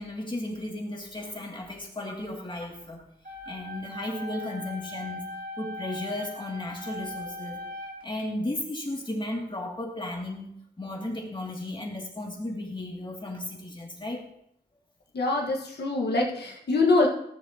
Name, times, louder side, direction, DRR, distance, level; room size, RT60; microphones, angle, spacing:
voice 1, 0.0-3.0 3.5-5.3 5.6-7.6 8.0-10.5 10.8-14.2, left 1 dB, 25° left, -1 dB, 2.5 m, -34 dB
sound 1, 3.2-8.2, left 1 dB, 50° right, 2.0 m, -39 dB
voice 2, 15.1-17.1, left 3 dB, 70° left, -1 dB, 1.7 m, -24 dB
14.0 x 7.0 x 3.0 m, 0.74 s
cardioid pair, 55°, 18 cm